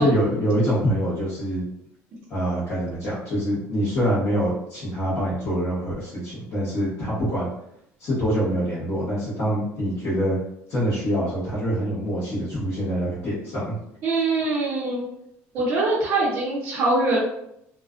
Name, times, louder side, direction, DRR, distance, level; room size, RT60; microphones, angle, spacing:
voice 1, 0.0-1.6 2.3-7.5 8.0-10.4 10.7-13.7, equal, 40° left, -11 dB, 1.1 m, -25 dB
voice 2, 14.0-15.0 15.5-17.2, right 2 dB, 40° right, -6 dB, 0.6 m, -23 dB
2.4 x 2.2 x 2.4 m, 0.76 s
cardioid pair, 175°, 6 cm